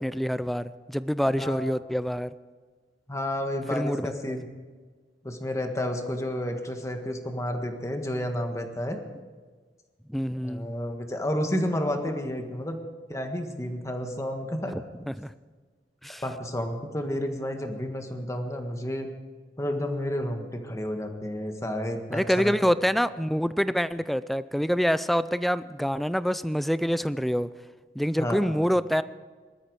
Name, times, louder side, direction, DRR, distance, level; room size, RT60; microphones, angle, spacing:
voice 1, 0.0-2.3 3.7-4.4 10.1-10.7 14.7-15.3 16.0-16.2 22.1-27.5 28.0-29.0, equal, ahead, 15 dB, 0.4 m, -26 dB
voice 2, 1.2-1.6 3.1-4.4 5.2-9.0 10.3-12.8 13.1-14.7 15.0-15.1 16.2-19.1 19.6-22.7 28.2-28.5, left 1 dB, 15° left, 5 dB, 1.6 m, -31 dB
20.0 x 13.0 x 4.8 m, 1.5 s
head